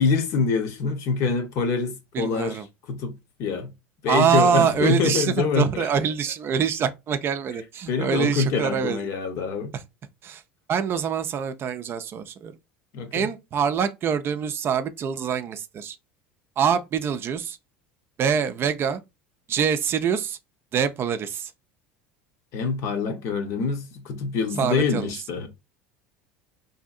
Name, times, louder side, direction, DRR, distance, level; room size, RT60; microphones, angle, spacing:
voice 1, 0.0-2.6 2.9-3.7 4.0-5.9 7.9-9.7 12.9-13.3 22.5-25.5, left 5 dB, 60° left, 0.8 m, -25 dB
voice 2, 2.1-2.7 4.1-9.0 9.7-9.8 10.2-10.4 10.7-12.5 13.1-16.0 16.6-17.6 18.2-19.0 19.5-20.4 20.7-21.5 24.6-25.1, right 7 dB, 40° right, 0.4 m, -25 dB
2.7 x 2.6 x 2.4 m
hypercardioid pair, 85°, 6 cm